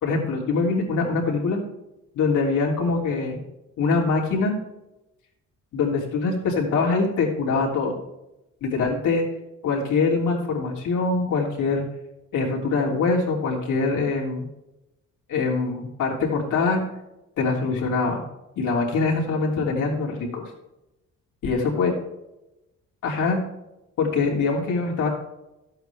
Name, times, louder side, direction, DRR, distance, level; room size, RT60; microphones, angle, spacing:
voice 1, 0.0-1.6 2.1-3.4 3.8-4.5 5.7-8.0 8.6-9.2 9.6-11.8 12.3-14.5 15.3-16.8 17.4-18.2 18.6-20.4 21.4-21.9 23.0-23.4 24.0-25.1, left 4 dB, 80° left, -2 dB, 3.1 m, -23 dB
12.5 x 8.7 x 3.4 m, 0.93 s
cardioid pair, 90°, 30 cm